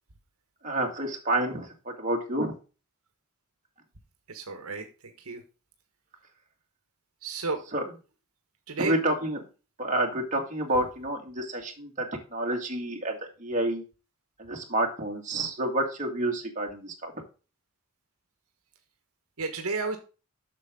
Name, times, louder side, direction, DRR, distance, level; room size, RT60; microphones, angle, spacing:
voice 1, 0.6-2.5 7.7-7.8 8.8-9.4 9.8-13.8 14.4-17.1, right 1 dB, 35° right, 1 dB, 2.2 m, -29 dB
voice 2, 4.3-5.4 7.2-7.6 8.7-8.9 19.4-20.0, right 3 dB, 75° right, 6 dB, 1.4 m, -32 dB
8.2 x 6.6 x 3.7 m, 0.33 s
head